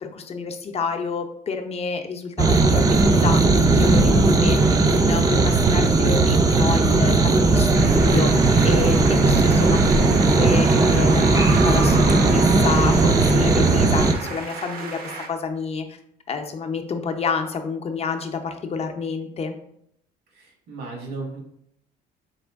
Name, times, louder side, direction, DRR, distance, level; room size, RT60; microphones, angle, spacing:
voice 1, 0.0-16.0 16.3-19.5, left 5 dB, 35° left, 6 dB, 0.6 m, -29 dB
sound 1, 2.4-14.1, right 3 dB, 20° right, 0.4 m, -17 dB
sound 2, 7.7-15.3, right 4 dB, 60° right, 0.7 m, -32 dB
voice 2, 20.3-21.4, right 3 dB, 80° right, 0 dB, 1.5 m, -35 dB
4.3 x 3.0 x 3.5 m, 0.72 s
cardioid pair, 110°, 17 cm